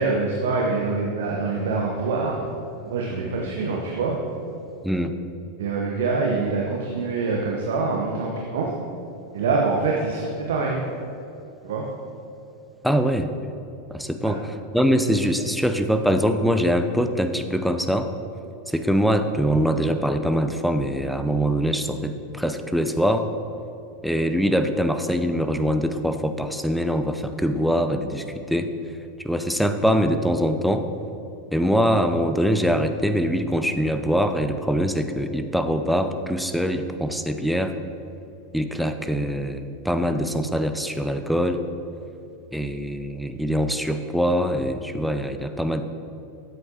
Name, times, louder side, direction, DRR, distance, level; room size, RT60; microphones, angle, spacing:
voice 1, 0.0-2.4 2.8-4.2 5.6-8.7 9.3-10.8 11.6-11.8 14.2-14.3, right 4 dB, 60° right, -1 dB, 1.0 m, -25 dB
voice 2, 12.8-13.3 13.9-18.1 18.7-23.3 24.0-28.7 29.2-30.9 31.5-37.7 38.5-41.6 42.5-45.8, equal, ahead, 8 dB, 0.5 m, -23 dB
13.0 x 7.8 x 2.9 m, 2.8 s
figure-of-eight pair, 85°, 0 cm